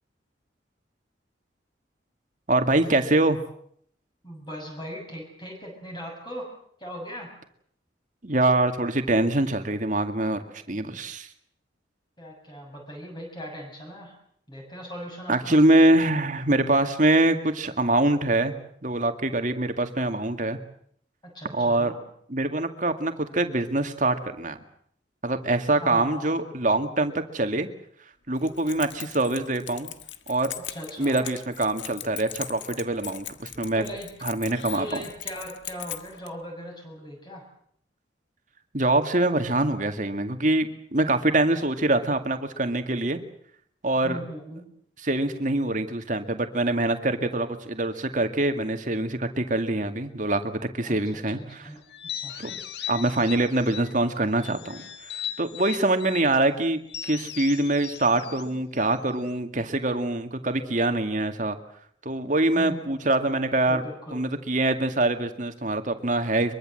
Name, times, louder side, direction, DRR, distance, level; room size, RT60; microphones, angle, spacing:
voice 1, 2.5-3.4 8.2-11.3 15.3-18.5 18.8-20.6 21.5-21.9 22.3-24.6 25.2-27.7 28.3-29.9 30.3-30.5 31.0-33.8 34.2-35.0 38.7-43.2 43.8-44.2 45.0-51.4 52.4-52.6 52.9-54.8 55.4-61.6 62.1-63.8 64.1-66.5, right 2 dB, 45° right, 7 dB, 2.1 m, -24 dB
voice 2, 4.2-6.5 6.8-7.3 12.2-14.1 14.5-15.5 21.2-22.0 25.7-26.5 30.7-31.3 33.7-34.1 34.7-37.4 44.0-44.6 50.8-51.8 52.1-52.4 62.5-64.2, equal, 25° left, 0 dB, 6.7 m, -39 dB
Keys jangling, 28.4-36.3, left 12 dB, 85° left, 1.5 m, -40 dB
sound 1, 51.9-54.0 54.4-56.3 56.9-59.4, left 10 dB, 65° left, 1.5 m, -38 dB
23.5 x 23.0 x 7.9 m, 0.67 s
head